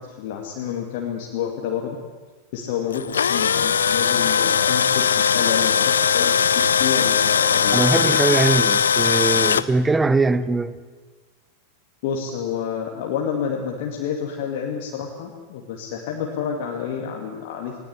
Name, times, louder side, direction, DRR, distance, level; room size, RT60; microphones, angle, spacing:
voice 1, 0.0-2.0 2.5-6.3 6.7-8.4 12.0-17.8, left 7 dB, 50° left, 2.5 m, -29 dB
Tools, 2.9-9.6, left 7 dB, 70° left, 0.6 m, -19 dB
voice 2, 7.7-10.7, right 3 dB, 10° right, 1.1 m, -21 dB
20.0 x 19.0 x 9.8 m
figure-of-eight pair, 90°, 0 cm